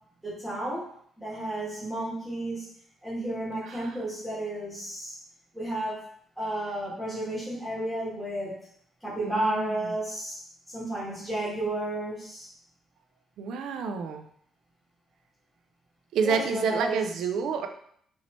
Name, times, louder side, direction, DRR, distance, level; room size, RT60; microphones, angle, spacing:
voice 1, 0.2-0.9 1.2-2.7 3.0-5.1 5.5-6.1 6.4-8.6 9.0-10.4 10.7-12.5 16.2-17.1, right 1 dB, 5° right, -9 dB, 1.7 m, -32 dB
voice 2, 3.6-4.0 9.2-9.8 13.4-14.3 16.1-17.7, right 5 dB, 80° right, 6 dB, 0.4 m, -29 dB
4.3 x 2.7 x 3.0 m, 0.64 s
cardioid pair, 90°, 0 cm